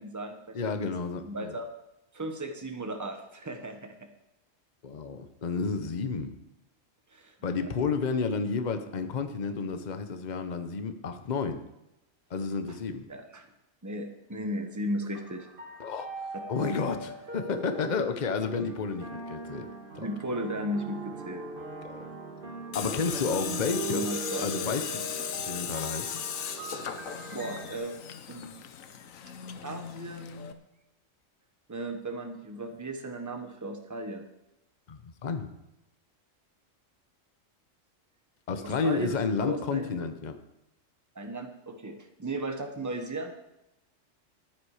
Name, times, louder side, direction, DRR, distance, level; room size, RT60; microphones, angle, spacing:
voice 1, 0.0-0.9 1.2-1.7 2.1-4.0 7.1-7.7 12.7-12.8 13.1-13.5 13.8-15.5 16.6-16.8 20.0-21.5 23.8-24.5 27.3-28.0 28.3-28.5 29.6-30.5 31.7-34.2 38.6-40.1 41.1-43.3, right 1 dB, 15° right, 5 dB, 1.1 m, -36 dB
voice 2, 0.5-1.5 4.8-6.3 7.4-11.6 12.3-13.1 15.8-16.1 16.5-19.7 19.9-20.1 21.8-22.0 22.7-24.1 24.4-25.1 25.3-26.2 34.9-35.5 38.5-40.3, left 5 dB, 40° left, 8 dB, 1.0 m, -31 dB
sound 1, 15.1-27.7, right 2 dB, 45° right, 1.7 m, -40 dB
Tools, 22.7-30.5, left 8 dB, 85° left, 1.2 m, -37 dB
14.0 x 9.5 x 4.9 m, 0.90 s
omnidirectional pair, 1.3 m